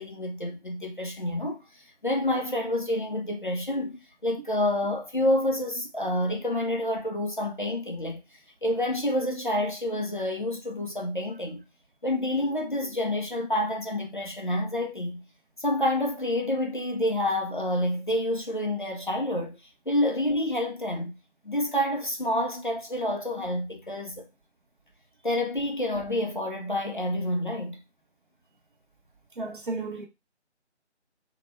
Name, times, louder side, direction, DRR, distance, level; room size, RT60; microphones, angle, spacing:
voice 1, 0.0-1.6 2.0-8.2 8.6-11.6 12.0-15.2 15.6-19.6 19.9-21.1 21.4-24.2 25.2-27.8, left 1 dB, 45° left, 0.5 m, -28 dB
voice 2, 29.4-30.1, right 3 dB, 45° right, 0.6 m, -33 dB
2.1 x 2.1 x 3.0 m
figure-of-eight pair, 160°, 35 cm